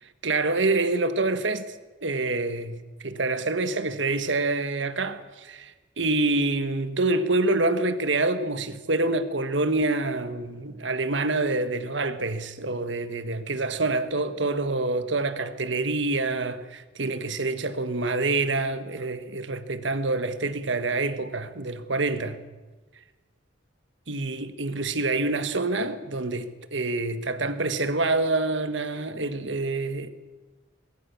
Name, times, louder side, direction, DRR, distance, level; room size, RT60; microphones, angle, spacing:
voice 1, 0.0-1.7 2.0-22.4 24.1-30.1, right 2 dB, 70° right, 1.6 m, -27 dB
24.0 x 21.0 x 7.0 m
head